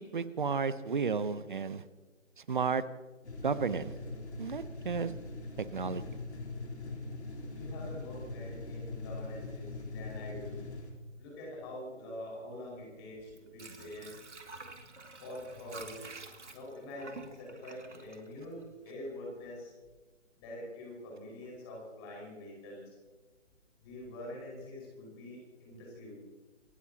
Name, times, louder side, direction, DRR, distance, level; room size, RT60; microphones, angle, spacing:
voice 1, 0.0-1.8 2.4-2.8 3.4-3.9 4.4-5.1 5.6-6.0, right 5 dB, 40° right, 15 dB, 0.8 m, -32 dB
sound 1, 3.2-10.9, left 2 dB, 60° left, 3.7 m, -42 dB
voice 2, 7.5-10.6 11.2-14.1 15.2-16.0 16.5-19.7 20.4-23.0 23.8-26.2, left 1 dB, 20° left, -2 dB, 5.3 m, -45 dB
Water / Sink (filling or washing), 13.2-19.1 19.4-19.5, right 3 dB, 65° right, 2.5 m, -49 dB
28.0 x 13.5 x 2.9 m, 1.3 s
figure-of-eight pair, 150°, 38 cm